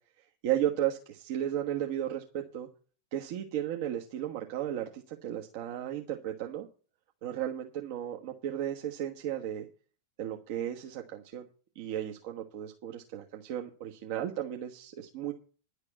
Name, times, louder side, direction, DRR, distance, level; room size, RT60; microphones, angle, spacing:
voice 1, 0.4-2.7 3.1-6.7 7.2-9.7 10.2-11.5 11.7-15.3, right 11 dB, 50° right, 3 dB, 1.2 m, -34 dB
11.0 x 6.6 x 8.1 m, 0.37 s
figure-of-eight pair, 90°, 0 cm